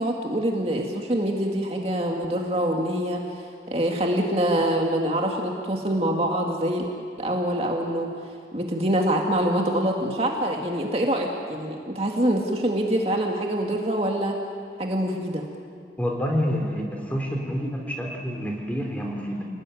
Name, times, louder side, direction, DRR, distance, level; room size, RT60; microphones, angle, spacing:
voice 1, 0.0-6.9 7.2-8.1 8.5-14.4 14.8-15.5, right 1 dB, 35° right, 1 dB, 2.2 m, -25 dB
voice 2, 16.0-19.5, equal, 10° left, 1 dB, 3.7 m, -28 dB
29.5 x 20.5 x 9.3 m, 2.4 s
head